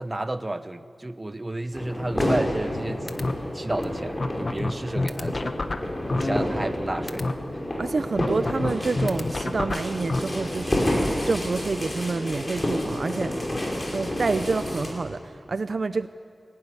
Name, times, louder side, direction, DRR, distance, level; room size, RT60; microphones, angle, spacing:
voice 1, 0.0-3.1 3.5-5.5 6.1-7.3, right 1 dB, 25° right, 11 dB, 1.0 m, -31 dB
sound 1, 1.7-14.9, left 1 dB, 25° left, 5.7 m, -29 dB
sound 2, 2.2-2.8 3.1-3.3 3.8-3.9 4.2-6.8 7.1-7.3 8.2-10.2, left 2 dB, 50° left, 1.2 m, -27 dB
voice 2, 7.8-11.0 11.2-13.5 13.9-16.1, right 4 dB, 60° right, 12 dB, 0.6 m, -28 dB
22.5 x 17.5 x 9.8 m, 2.3 s
wide cardioid pair, 95°, 0 cm